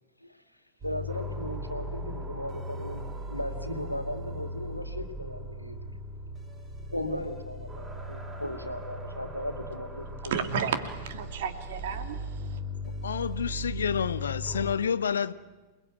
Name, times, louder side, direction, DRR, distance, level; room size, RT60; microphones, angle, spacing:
voice 1, 0.8-6.0 6.9-10.5, left 1 dB, 90° left, 7 dB, 2.3 m, -37 dB
sound 1, 0.8-14.8, equal, 20° right, 5.9 m, -38 dB
voice 2, 10.3-10.8 11.1-12.6, right 7 dB, 55° right, 8 dB, 2.8 m, -32 dB
voice 3, 13.0-15.3, left 7 dB, 70° left, 16 dB, 0.9 m, -29 dB
28.0 x 21.0 x 8.9 m, 1.2 s
figure-of-eight pair, 90°, 0 cm